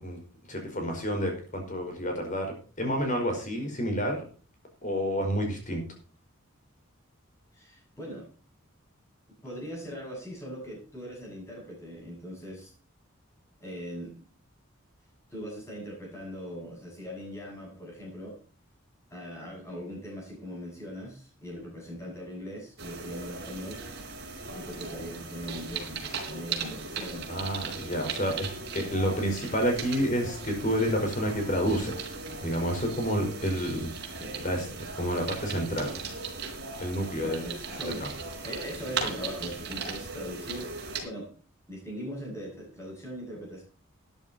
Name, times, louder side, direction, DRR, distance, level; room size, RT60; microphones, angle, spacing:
voice 1, 0.5-4.3 4.8-5.8 27.3-28.5 28.7-32.0 32.4-33.9 34.4-34.7 34.9-36.1 36.8-37.5 38.0-38.1, equal, 35° left, 3 dB, 5.0 m, -29 dB
voice 2, 7.5-8.3 9.4-12.7 13.6-14.2 15.3-18.4 19.1-23.8 24.5-27.3 34.2-34.4 35.2-35.3 37.2-41.3 41.7-43.6, equal, 15° left, -2 dB, 7.9 m, -40 dB
sound 1, 22.8-41.0, right 4 dB, 55° right, 3.9 m, -38 dB
13.0 x 10.5 x 4.4 m, 0.37 s
head